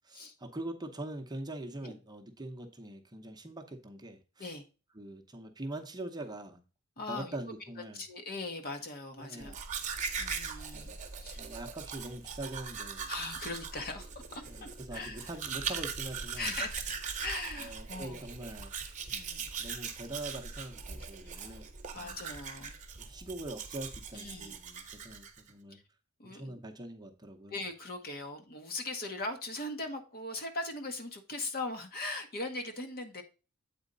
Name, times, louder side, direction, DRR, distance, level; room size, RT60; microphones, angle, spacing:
voice 1, 0.0-4.5 5.0-6.6 7.1-8.0 9.2-10.0 10.7-11.0 11.4-13.1 14.5-16.5 17.6-18.8 19.2-19.3 19.6-21.7 22.0-22.1 23.0-25.8 26.2-27.6, right 1 dB, 20° right, 3 dB, 0.8 m, -43 dB
voice 2, 7.0-7.4 7.9-9.6 10.2-10.9 11.2-11.4 13.0-15.3 16.4-16.8 17.2-18.2 19.1-19.5 21.3-21.6 21.9-22.7 24.1-24.6 25.7-25.8 26.2-26.6 27.5-33.2, left 2 dB, 45° left, 6 dB, 1.3 m, -40 dB
Domestic sounds home sounds, 9.4-25.5, right 6 dB, 35° right, 1.1 m, -40 dB
8.3 x 4.3 x 3.9 m, 0.32 s
head